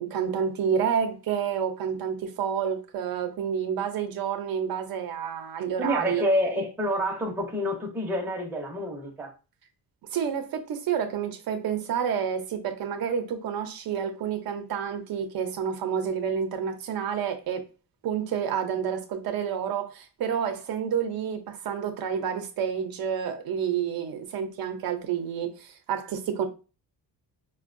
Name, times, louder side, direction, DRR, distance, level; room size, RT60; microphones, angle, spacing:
voice 1, 0.0-6.2 10.1-17.7 18.0-26.5, right 8 dB, 60° right, 0.6 m, -29 dB
voice 2, 5.8-9.3, equal, 5° right, 0.6 m, -28 dB
4.3 x 2.2 x 2.5 m
cardioid pair, 175°, 39 cm